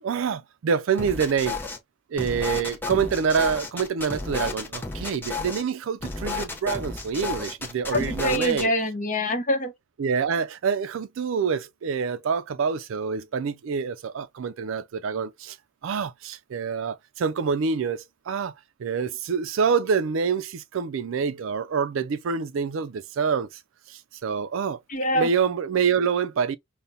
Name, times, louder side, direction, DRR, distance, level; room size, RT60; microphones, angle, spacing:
voice 1, 0.0-1.6 2.1-8.7 10.0-15.6 15.8-18.5 18.8-23.6 23.9-24.8 25.1-26.6, right 6 dB, 70° right, 0.4 m, -26 dB
sound 1, 1.0-1.8 2.2-5.6 6.0-8.7, left 3 dB, 10° left, 0.6 m, -32 dB
voice 2, 7.9-9.7 24.9-25.3, left 1 dB, 40° left, 0.8 m, -25 dB
5.2 x 2.2 x 2.7 m
head